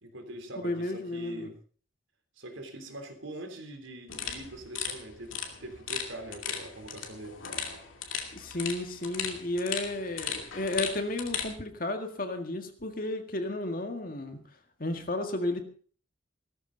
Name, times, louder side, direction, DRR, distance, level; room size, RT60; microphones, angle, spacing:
voice 1, 0.0-1.6 2.4-7.4, right 1 dB, 80° right, 5 dB, 3.4 m, -43 dB
voice 2, 0.6-1.5 8.3-14.4 14.8-15.6, left 2 dB, 45° left, 6 dB, 1.9 m, -33 dB
sound 1, 4.1-11.5, left 7 dB, 85° left, 2.5 m, -37 dB
16.5 x 13.5 x 3.9 m, 0.42 s
head